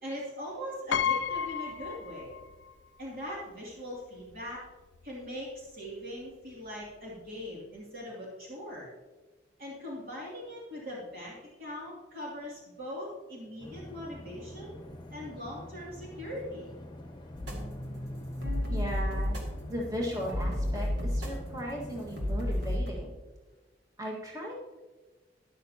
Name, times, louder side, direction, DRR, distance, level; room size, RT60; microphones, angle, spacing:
voice 1, 0.0-2.3 3.0-4.6 5.0-8.9 9.6-14.7 15.1-16.7, equal, 55° right, -5 dB, 2.8 m, -41 dB
Piano, 0.9-2.7 3.1-3.2 4.3-4.4 4.7-5.0, left 7 dB, 80° left, 0.4 m, -32 dB
sound 1, 13.6-22.8, left 1 dB, 25° left, 1.0 m, -46 dB
sound 2, 17.4-22.9, left 1 dB, 75° right, 2.1 m, -33 dB
voice 2, 18.7-19.4 19.7-23.1 24.0-24.7, equal, 20° right, -3 dB, 1.8 m, -37 dB
12.5 x 11.0 x 2.9 m, 1.2 s
head